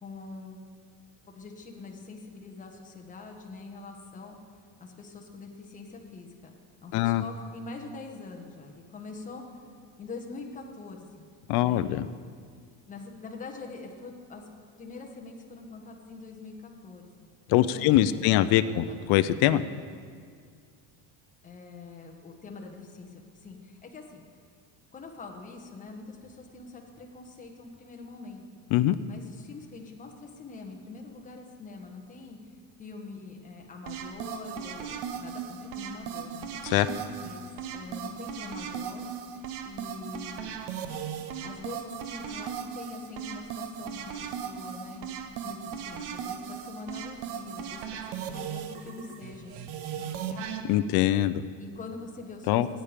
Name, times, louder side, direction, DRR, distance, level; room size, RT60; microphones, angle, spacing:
voice 1, 0.0-0.6 1.3-4.4 4.8-6.5 6.8-9.6 10.0-11.3 11.6-11.9 12.9-14.5 14.8-19.0 21.4-24.2 24.9-28.4 29.0-32.4 32.8-36.5 37.2-37.4 37.7-39.1 39.6-40.6 41.4-45.1 45.4-49.5 49.9-50.4 51.6-52.8, left 4 dB, 15° left, 1 dB, 1.3 m, -44 dB
voice 2, 6.9-7.2 11.5-12.1 17.5-19.6 28.7-28.9 36.6-36.9 50.7-51.4 52.5-52.7, left 13 dB, 60° left, 12 dB, 0.5 m, -23 dB
sound 1, 33.9-50.6, right 7 dB, 65° right, 1.0 m, -37 dB
15.5 x 9.0 x 5.1 m, 2.1 s
cardioid pair, 150°, 44 cm